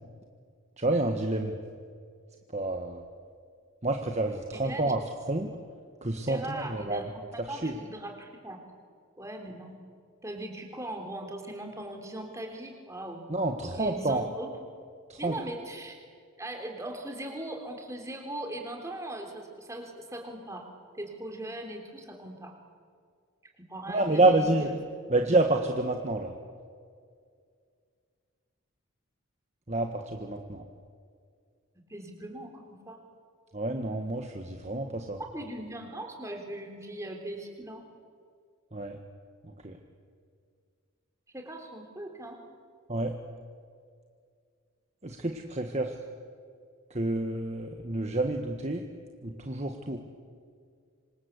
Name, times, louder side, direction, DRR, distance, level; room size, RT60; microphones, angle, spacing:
voice 1, 0.8-1.6 2.5-3.0 3.8-5.0 5.3-5.5 6.0-7.0 7.5-7.7 13.3-14.2 15.1-15.3 23.9-24.7 25.1-26.3 29.7-30.6 33.5-35.2 38.7-39.0 39.6-39.8 42.9-43.1 45.0-45.9 46.9-48.8 49.2-50.0, right 2 dB, 30° right, 3 dB, 1.5 m, -28 dB
voice 2, 4.5-5.0 6.3-8.6 9.2-9.8 10.2-13.2 13.7-14.5 15.2-16.0 16.4-20.7 21.0-22.6 23.6-24.7 25.1-25.2 31.9-33.0 35.2-37.8 41.3-42.4, right 1 dB, 15° right, 3 dB, 3.5 m, -39 dB
27.0 x 26.0 x 8.3 m, 2.2 s
head